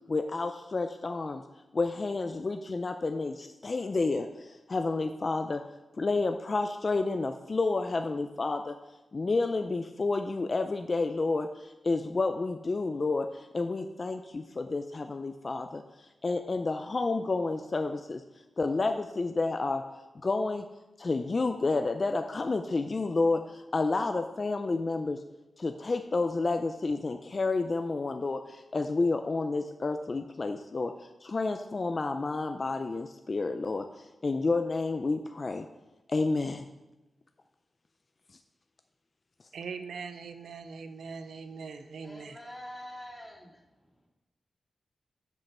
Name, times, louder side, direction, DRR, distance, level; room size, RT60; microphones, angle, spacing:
voice 1, 0.1-1.4 1.7-5.6 6.0-8.8 9.1-15.8 16.2-18.2 18.6-19.8 20.2-20.6 21.0-25.2 25.6-30.9 31.2-33.8 34.2-35.6 36.1-36.6, left 3 dB, 35° left, 7 dB, 0.4 m, -30 dB
voice 2, 39.5-42.4, right 5 dB, 85° right, 9 dB, 0.6 m, -41 dB
voice 3, 42.0-43.5, left 1 dB, 5° left, -6 dB, 2.3 m, -44 dB
7.4 x 5.4 x 6.1 m, 1.0 s
wide cardioid pair, 115°, 0 cm